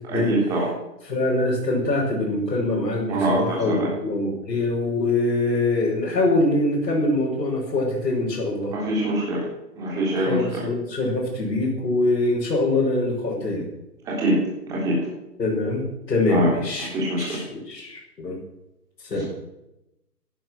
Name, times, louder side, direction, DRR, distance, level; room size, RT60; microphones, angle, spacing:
voice 1, 0.1-0.7 3.1-3.9 8.7-9.4 9.8-10.6 14.1-14.4 14.7-15.0 16.3-16.5 16.9-17.4, right 1 dB, 5° right, -5 dB, 3.3 m, -24 dB
voice 2, 1.0-8.7 10.3-13.7 15.4-15.8 16.1-16.9 17.2-18.4 19.0-19.2, left 2 dB, 85° left, -6 dB, 7.2 m, -24 dB
17.5 x 11.0 x 6.4 m, 0.90 s
hypercardioid pair, 175°, 50 cm